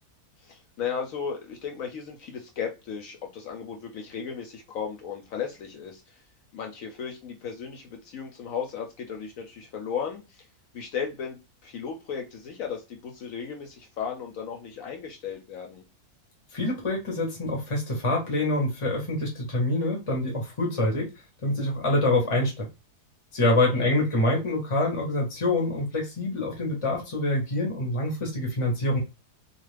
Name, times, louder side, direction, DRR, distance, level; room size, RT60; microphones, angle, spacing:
voice 1, 0.4-6.2 6.5-10.5 10.7-15.8 23.5-23.9, left 7 dB, 70° left, 2 dB, 0.9 m, -35 dB
voice 2, 16.5-21.1 21.4-22.7 23.3-29.0, left 2 dB, 30° left, -1 dB, 0.6 m, -26 dB
2.4 x 2.4 x 3.2 m, 0.26 s
omnidirectional pair, 1.7 m